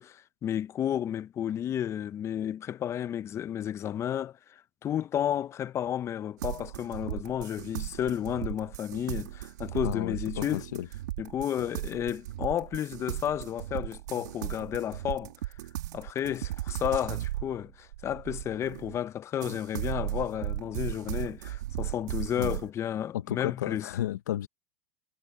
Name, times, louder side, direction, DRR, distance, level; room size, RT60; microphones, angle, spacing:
voice 1, 0.0-10.6 11.2-15.3 15.9-23.9, left 10 dB, 30° left, 0.7 m, -32 dB
sound 1, 6.4-19.0 19.4-22.7, right 15 dB, 85° right, 2.4 m, -36 dB
voice 2, 9.8-10.9 22.4-22.6 23.1-24.5, left 12 dB, 90° left, 1.0 m, -33 dB
supercardioid pair, 120°, 9 cm